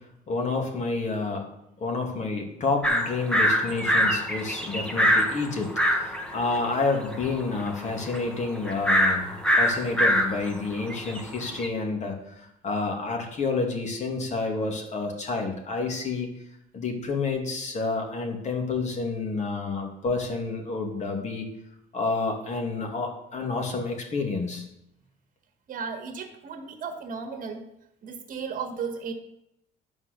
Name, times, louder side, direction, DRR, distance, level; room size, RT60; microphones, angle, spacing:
voice 1, 0.3-1.5 1.8-16.3 16.7-21.5 21.9-24.6, left 3 dB, 45° left, 2 dB, 2.5 m, -29 dB
sound 1, 2.8-11.7, equal, 5° left, 1.5 m, -24 dB
voice 2, 25.7-27.6 28.0-29.1, right 5 dB, 55° right, 5 dB, 1.7 m, -35 dB
10.5 x 5.3 x 6.7 m, 0.82 s
cardioid pair, 110°, 17 cm